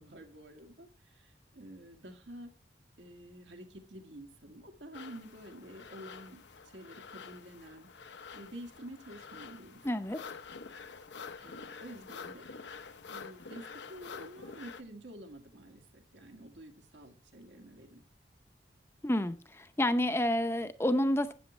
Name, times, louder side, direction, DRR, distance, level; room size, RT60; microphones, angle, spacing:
voice 1, 0.0-2.5 3.0-7.9 8.3-9.9 11.4-12.5 13.1-18.0, right 1 dB, 80° right, 4 dB, 2.0 m, -49 dB
sound 1, 4.9-14.8, left 5 dB, 80° left, 0.7 m, -48 dB
voice 2, 9.8-10.2 19.0-21.3, left 1 dB, 15° left, 11 dB, 0.6 m, -29 dB
13.5 x 8.6 x 3.2 m, 0.38 s
head